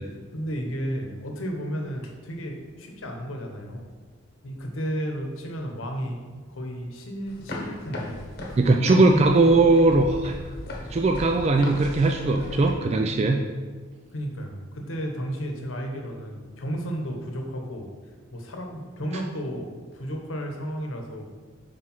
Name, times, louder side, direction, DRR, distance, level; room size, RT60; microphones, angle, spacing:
voice 1, 0.1-3.9 4.4-8.2 8.5-8.6 9.0-9.3 14.1-17.9 18.3-21.3, equal, 75° left, 2 dB, 1.0 m, -33 dB
sound 1, 7.3-12.7, left 1 dB, 50° left, 1.1 m, -37 dB
voice 2, 8.6-10.3 10.9-13.4, right 2 dB, 30° right, 3 dB, 0.3 m, -19 dB
4.9 x 4.6 x 5.5 m, 1.4 s
head